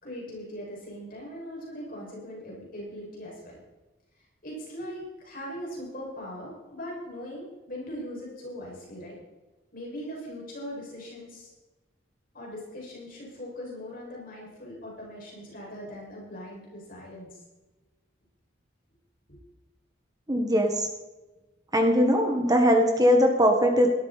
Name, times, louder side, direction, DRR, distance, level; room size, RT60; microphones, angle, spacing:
voice 1, 0.0-3.6 4.4-9.2 9.7-11.5 12.3-17.4 19.3-19.4, equal, 45° left, -3 dB, 6.0 m, -40 dB
voice 2, 20.3-20.9 21.7-23.9, equal, 20° right, 3 dB, 1.5 m, -21 dB
18.0 x 13.0 x 4.3 m, 1.1 s
head